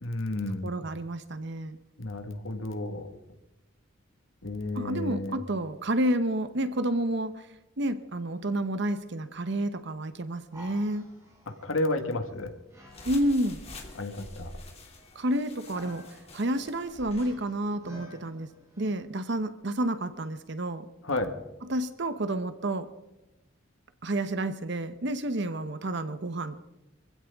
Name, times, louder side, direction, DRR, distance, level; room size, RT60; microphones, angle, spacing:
voice 1, 0.0-0.7 2.0-3.1 4.4-5.4 11.5-12.5 13.9-14.5 21.0-21.3, left 2 dB, 75° left, 6 dB, 1.7 m, -31 dB
voice 2, 0.6-1.8 4.7-7.5 7.8-11.1 13.0-13.6 15.1-18.5 18.8-20.8 21.7-22.9 24.0-26.6, right 1 dB, 55° right, 10 dB, 0.9 m, -30 dB
sound 1, 10.5-18.9, equal, 15° right, 6.8 m, -53 dB
sound 2, 12.9-17.3, left 2 dB, 30° left, 2.7 m, -47 dB
24.5 x 15.5 x 3.6 m, 0.97 s
head